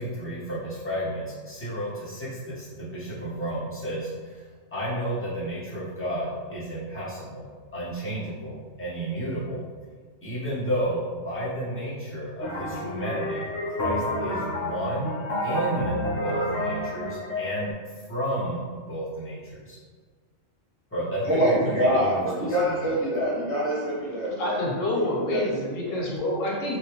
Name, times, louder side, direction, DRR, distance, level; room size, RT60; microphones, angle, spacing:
voice 1, 0.0-4.4 4.7-7.5 7.7-9.6 10.2-15.1 15.4-19.8 20.9-22.9, right 1 dB, 10° left, -9 dB, 0.9 m, -32 dB
sound 1, 12.4-17.7, left 1 dB, 65° left, 0.9 m, -30 dB
voice 2, 21.2-25.4 25.9-26.0, equal, 20° right, -7 dB, 0.4 m, -25 dB
voice 3, 24.4-26.8, left 1 dB, 80° left, -3 dB, 1.2 m, -28 dB
3.2 x 2.7 x 2.9 m, 1.5 s
omnidirectional pair, 1.3 m